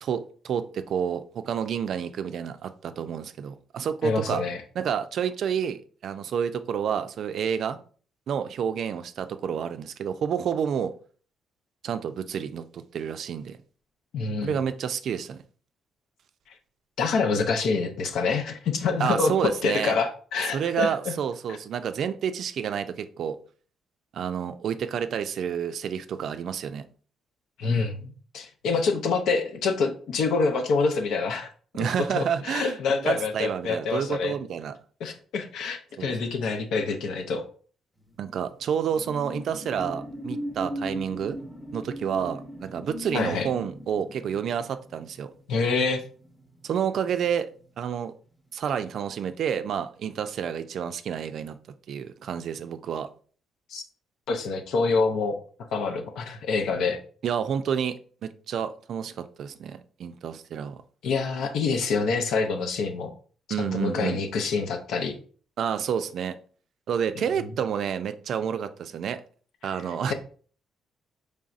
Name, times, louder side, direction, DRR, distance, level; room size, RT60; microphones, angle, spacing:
voice 1, 0.0-4.4 4.8-7.8 8.3-10.9 11.8-13.6 14.4-15.4 19.0-20.0 20.5-23.4 24.1-26.8 31.7-34.8 36.0-36.1 38.2-41.4 41.7-45.3 46.6-47.5 47.8-48.1 48.5-51.6 51.9-53.1 57.2-58.0 58.2-60.8 63.5-64.2 65.6-66.3 66.9-69.2 69.6-70.1, right 8 dB, 65° right, 10 dB, 0.3 m, -29 dB
voice 2, 4.0-4.6 14.1-14.6 17.0-21.1 21.5-21.6 27.6-31.5 32.1-34.3 35.0-37.4 43.1-43.5 45.5-46.0 53.7-53.8 54.3-55.4 55.7-57.0 61.0-63.1 63.6-65.2, left 4 dB, 80° left, 5 dB, 0.6 m, -26 dB
sound 1, 38.1-47.0 47.4-47.6, equal, 10° left, 0.9 m, -38 dB
4.0 x 3.3 x 2.4 m, 0.42 s
cardioid pair, 90°, 0 cm